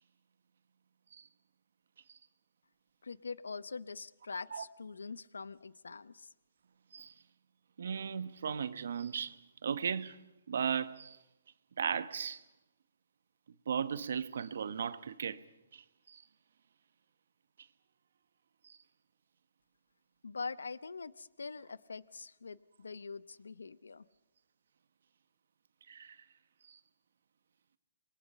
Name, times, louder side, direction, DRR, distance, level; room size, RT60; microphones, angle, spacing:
voice 1, 3.0-6.3 20.2-24.0, left 4 dB, 85° left, 0.7 m, -44 dB
voice 2, 7.8-10.2 10.5-11.2 11.8-12.4 13.7-15.4 15.7-16.2 18.6-18.8 25.9-26.2 26.7-26.8, right 7 dB, 70° right, 1.2 m, -36 dB
27.5 x 22.0 x 5.6 m
hypercardioid pair, 140°, 0 cm